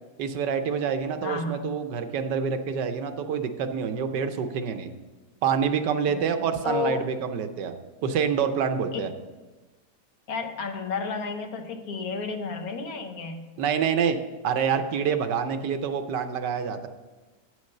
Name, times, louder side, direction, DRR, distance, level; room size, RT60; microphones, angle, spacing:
voice 1, 0.2-4.9 5.4-7.7 8.0-9.1 13.6-14.2 14.4-16.9, right 7 dB, 85° right, 8 dB, 1.4 m, -27 dB
voice 2, 1.2-1.7 6.1-7.1 8.9-9.1 10.3-13.5, left 4 dB, 65° left, 6 dB, 1.2 m, -32 dB
8.9 x 6.4 x 6.5 m, 1.2 s
omnidirectional pair, 1.8 m